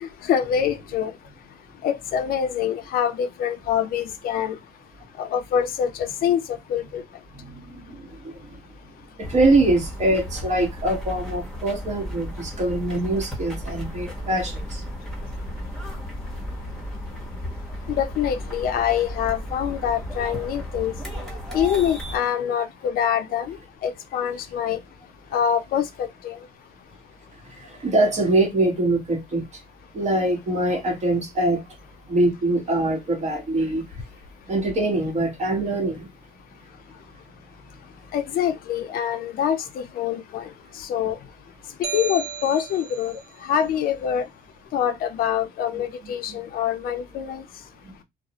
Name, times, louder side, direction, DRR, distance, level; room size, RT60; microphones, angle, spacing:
voice 1, 0.0-1.1 1.8-4.6 5.2-7.0 17.9-20.9 21.5-24.8 25.3-26.4 38.1-41.2 41.9-43.2 43.4-44.3 44.7-47.4, left 9 dB, 60° left, 0.4 m, -25 dB
voice 2, 7.3-8.5 9.2-14.8 27.5-29.5 29.9-31.6 32.1-33.9 34.5-36.1 46.0-46.4, right 2 dB, 45° right, 1.0 m, -23 dB
sound 1, 9.2-22.2, equal, ahead, 1.0 m, -34 dB
sound 2, 41.8-43.2, right 7 dB, 85° right, 0.6 m, -33 dB
2.3 x 2.0 x 2.8 m
cardioid pair, 110°, 17 cm